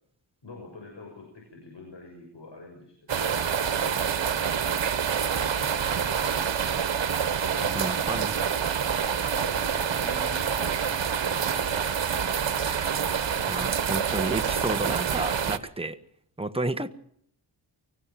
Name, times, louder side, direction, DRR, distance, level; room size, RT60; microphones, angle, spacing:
voice 1, 0.4-4.6 5.2-5.7 6.1-6.8 7.6-7.8 9.3-11.8, left 3 dB, 60° left, 1 dB, 6.9 m, -46 dB
sound 1, 3.1-15.6, right 7 dB, 65° right, 1.5 m, -27 dB
voice 2, 7.7-8.4 13.5-16.0 16.4-16.9, right 2 dB, 10° right, 8 dB, 1.4 m, -31 dB
24.5 x 16.0 x 7.6 m, 0.68 s
cardioid pair, 65°, 47 cm